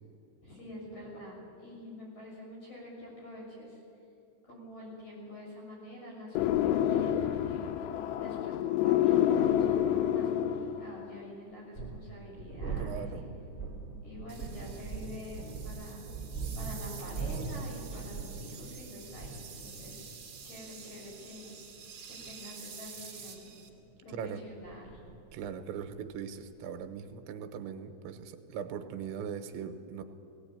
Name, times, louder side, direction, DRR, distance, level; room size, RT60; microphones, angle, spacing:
voice 1, 0.4-3.8 4.4-7.6 8.2-13.3 14.0-16.1 16.6-20.0 20.4-21.5 22.1-23.5 24.0-25.0, left 1 dB, 40° left, -4 dB, 7.8 m, -47 dB
sound 1, 6.4-11.0, left 11 dB, 80° left, 2.5 m, -28 dB
sound 2, 11.5-27.1, right 4 dB, 5° left, 1.0 m, -42 dB
voice 2, 12.8-13.2 24.1-24.4 25.3-30.0, right 7 dB, 80° right, 8 dB, 3.2 m, -40 dB
sound 3, 14.3-23.7, right 6 dB, 40° right, 2.5 m, -49 dB
17.5 x 17.5 x 8.9 m, 2.8 s
omnidirectional pair, 5.4 m